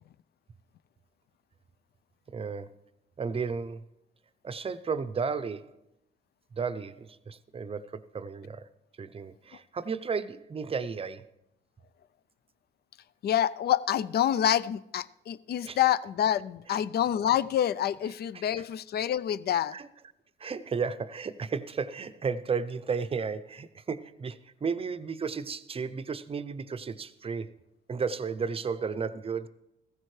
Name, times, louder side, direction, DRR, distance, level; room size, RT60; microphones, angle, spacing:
voice 1, 2.3-2.8 3.2-3.8 4.4-5.8 6.5-8.7 9.0-11.3 15.6-15.8 16.7-16.8 18.3-18.6 19.7-19.9 20.4-27.6 27.9-29.5, right 5 dB, 30° right, 0.6 m, -33 dB
voice 2, 13.2-19.8, left 10 dB, 55° left, 0.4 m, -27 dB
15.5 x 15.0 x 3.2 m
cardioid pair, 90°, 20 cm